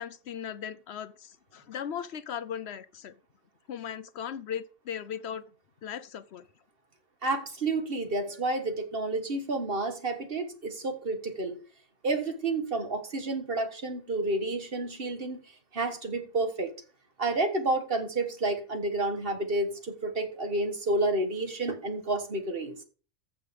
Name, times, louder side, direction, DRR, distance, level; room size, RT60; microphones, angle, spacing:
voice 1, 0.0-3.2 3.7-5.5 5.8-6.5, left 8 dB, 70° left, 0.9 m, -38 dB
voice 2, 7.2-11.6 12.0-15.4 15.7-16.7 17.2-22.8, right 2 dB, 50° right, 1.7 m, -30 dB
15.0 x 5.7 x 5.1 m
omnidirectional pair, 1.2 m